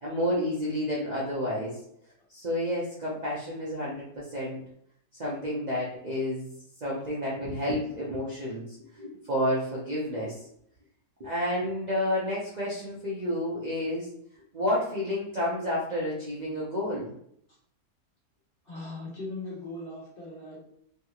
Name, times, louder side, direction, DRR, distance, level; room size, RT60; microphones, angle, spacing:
voice 1, 0.0-1.8 2.3-4.6 5.2-6.5 6.8-8.6 8.9-10.4 11.2-14.1 14.5-17.1, left 1 dB, 85° right, -7 dB, 0.3 m, -30 dB
voice 2, 18.6-20.6, left 2 dB, 40° left, -4 dB, 0.9 m, -39 dB
3.5 x 2.9 x 2.3 m, 0.69 s
omnidirectional pair, 1.8 m